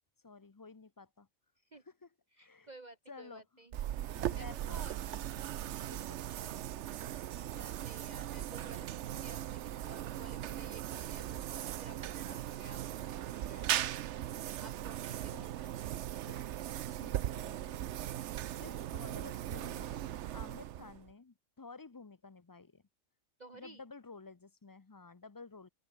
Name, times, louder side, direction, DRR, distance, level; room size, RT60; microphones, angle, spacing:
voice 1, 0.2-1.3 1.9-2.1 2.4-2.7 3.1-3.4 4.0-4.8 5.0-5.2 5.9-6.2 15.3-15.5 16.3-16.6 17.0-18.0 18.6-22.8 23.5-25.7, left 4 dB, 30° left, 0.4 m, -52 dB
voice 2, 2.4-3.7 4.3-5.0 7.5-13.8 14.6-15.7 23.4-23.8, right 2 dB, 35° right, 1.4 m, -54 dB
sound 1, 3.7-21.1, right 12 dB, 65° right, 0.9 m, -39 dB
omnidirectional pair, 1.4 m